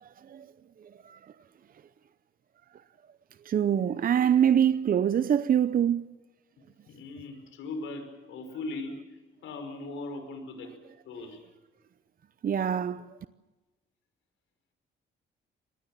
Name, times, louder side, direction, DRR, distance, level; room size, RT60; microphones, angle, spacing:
voice 1, 0.0-0.5 1.0-1.2 3.4-6.1 12.4-13.1, right 9 dB, 45° right, 0.7 m, -24 dB
voice 2, 6.9-10.7 11.0-11.4, left 2 dB, 80° left, 5.5 m, -39 dB
26.0 x 19.5 x 7.5 m
cardioid pair, 90°, 20 cm